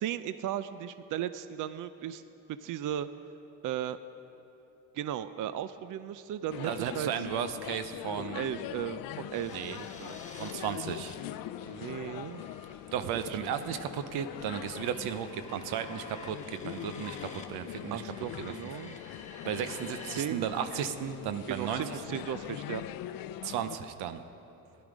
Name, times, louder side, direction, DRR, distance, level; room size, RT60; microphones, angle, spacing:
voice 1, 0.0-2.2 2.5-3.1 3.6-4.0 4.9-7.1 8.2-10.2 11.6-12.4 13.3-13.4 17.9-19.0 20.1-20.5 21.5-22.8, right 11 dB, 55° right, 13 dB, 0.5 m, -36 dB
sound 1, 6.5-23.8, left 13 dB, 65° left, 0.5 m, -42 dB
voice 2, 6.6-8.4 9.5-9.8 10.4-11.1 12.9-18.0 18.4-18.5 19.4-22.2 23.4-24.2, right 9 dB, 85° right, 10 dB, 0.8 m, -35 dB
sound 2, 9.3-20.2 20.5-22.9, left 3 dB, 20° left, 1.3 m, -51 dB
15.5 x 11.0 x 5.1 m, 3.0 s
supercardioid pair, 80°, 37 cm